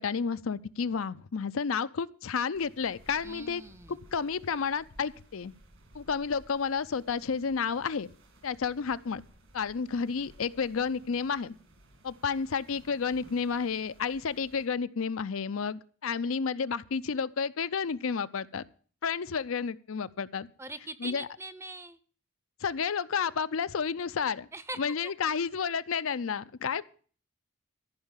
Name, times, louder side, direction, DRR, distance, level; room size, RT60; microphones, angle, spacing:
voice 1, 0.0-3.6 3.9-5.5 5.9-8.1 8.4-9.2 9.5-11.5 12.0-18.6 19.0-20.5 21.0-21.3 22.6-24.5 24.8-26.8, left 6 dB, 80° left, 14 dB, 0.5 m, -31 dB
sound 1, 2.5-14.7, right 1 dB, 65° right, 2.5 m, -58 dB
voice 2, 3.2-4.1 20.6-22.0 24.5-25.1, right 2 dB, 15° right, 14 dB, 0.6 m, -42 dB
14.0 x 5.6 x 8.9 m, 0.43 s
head